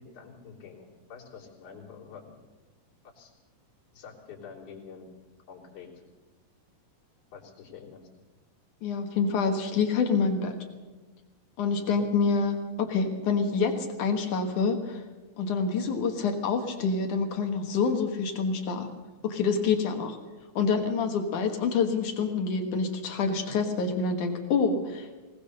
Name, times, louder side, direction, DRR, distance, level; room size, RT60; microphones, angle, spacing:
voice 1, 0.0-2.4 3.2-3.3 3.9-5.1 5.5-5.9 7.3-8.0 11.7-11.9, left 6 dB, 45° left, -4 dB, 4.6 m, -47 dB
voice 2, 8.8-10.6 11.6-15.0 15.4-18.9 19.2-20.2 20.6-25.2, left 5 dB, 60° left, 5 dB, 2.2 m, -27 dB
20.5 x 20.0 x 6.7 m, 1.2 s
omnidirectional pair, 5.4 m